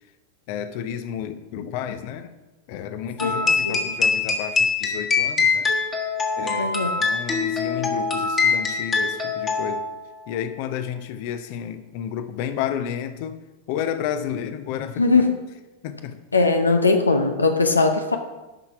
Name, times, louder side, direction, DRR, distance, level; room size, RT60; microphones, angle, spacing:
voice 1, 0.5-2.3 2.7-5.7 6.4-9.9 10.3-13.4 13.7-15.2 15.8-16.2, left 9 dB, 45° left, 11 dB, 0.8 m, -31 dB
voice 2, 3.2-3.8 6.6-6.9 15.0-15.4 16.3-18.2, left 3 dB, 80° left, 6 dB, 0.8 m, -20 dB
sound 1, 3.2-10.0, left 4 dB, 20° left, 1.5 m, -23 dB
11.0 x 5.8 x 4.8 m, 1.1 s
figure-of-eight pair, 90°, 0 cm